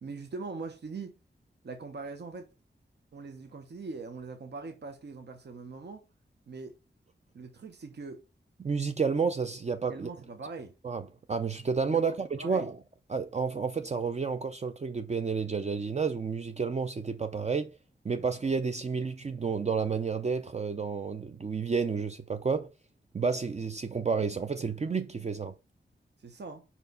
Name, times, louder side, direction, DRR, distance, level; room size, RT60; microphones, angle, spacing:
voice 1, 0.0-1.1 1.6-2.5 3.1-6.1 6.5-6.8 7.3-8.2 9.9-10.7 11.9-12.7 26.2-26.6, right 4 dB, 65° right, 1.0 m, -42 dB
voice 2, 8.6-10.1 10.8-12.8 13.1-17.7 18.0-22.7 23.1-25.5, right 5 dB, 35° right, 0.5 m, -30 dB
5.6 x 4.5 x 3.9 m
wide cardioid pair, 125°, 19 cm